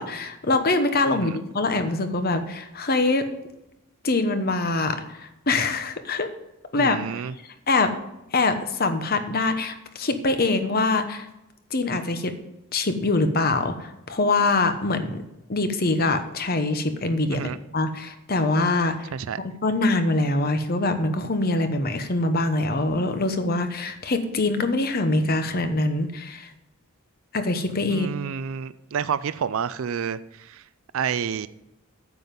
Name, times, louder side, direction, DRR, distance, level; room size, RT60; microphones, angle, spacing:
voice 1, 0.0-3.3 4.0-6.3 6.7-7.0 7.7-7.9 8.3-11.3 11.7-12.4 12.7-15.2 15.5-19.1 19.6-26.5 27.3-28.1, left 2 dB, 45° left, 9 dB, 1.0 m, -24 dB
voice 2, 6.8-7.3 17.3-17.6 19.1-19.4 27.9-30.6 30.9-31.5, right 7 dB, 70° right, 15 dB, 0.4 m, -29 dB
9.5 x 7.6 x 5.3 m, 0.89 s
head